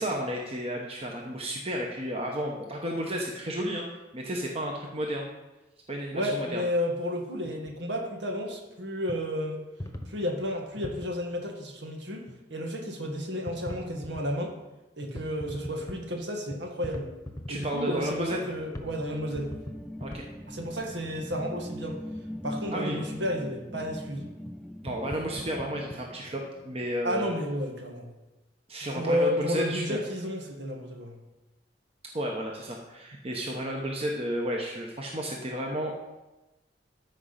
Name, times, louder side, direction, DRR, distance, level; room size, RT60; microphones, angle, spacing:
voice 1, 0.0-3.8 4.1-5.3 5.9-6.6 17.5-18.5 20.0-20.3 22.7-23.0 24.8-27.3 28.7-30.0 32.1-36.0, equal, 35° right, 0 dB, 1.0 m, -32 dB
voice 2, 6.1-9.6 10.1-14.5 15.0-17.1 17.5-19.5 20.5-22.0 22.4-24.2 27.0-28.1 28.9-31.1, equal, 90° right, 2 dB, 1.8 m, -32 dB
sound 1, 7.3-7.8 8.3-8.4 9.1-9.2 9.8-11.1 12.3-12.4 12.8-12.9 13.5-14.2 15.0-16.0 16.5-17.8 18.4-18.5 18.7-18.9 19.2-20.3 20.6-20.7 22.5-22.8 24.5-24.6 24.8-26.0, left 1 dB, 20° left, 1.0 m, -40 dB
sound 2, 17.9-26.9, equal, ahead, 0.4 m, -42 dB
13.5 x 5.0 x 5.8 m, 1.1 s
head